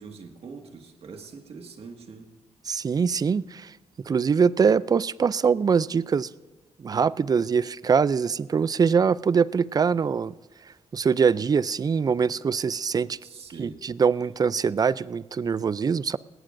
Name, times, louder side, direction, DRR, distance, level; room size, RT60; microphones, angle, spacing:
voice 1, 0.0-2.3 13.2-13.8, right 4 dB, 60° right, 1.9 m, -43 dB
voice 2, 2.7-3.8 4.1-6.3 6.8-10.3 10.9-13.2 13.6-16.2, right 6 dB, 35° right, 0.4 m, -23 dB
19.0 x 17.0 x 2.6 m
cardioid pair, 90°, 11 cm